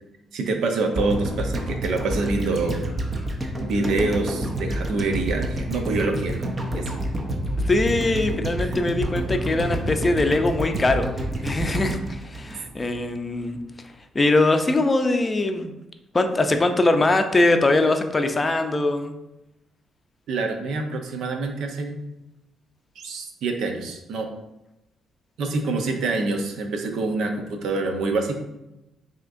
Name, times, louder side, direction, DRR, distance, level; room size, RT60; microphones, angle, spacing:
voice 1, 0.3-2.8 3.6-6.5 6.7-7.0 20.3-22.0 23.0-24.3 25.4-28.3, right 3 dB, 80° right, 4 dB, 0.6 m, -26 dB
sound 1, 0.9-13.2 13.4-13.5, right 1 dB, 30° right, 0.7 m, -28 dB
voice 2, 7.6-11.1 11.4-13.6 14.1-15.7 16.1-19.1, left 2 dB, 25° left, 6 dB, 0.5 m, -22 dB
5.9 x 2.9 x 2.5 m, 0.93 s
cardioid pair, 90°, 0 cm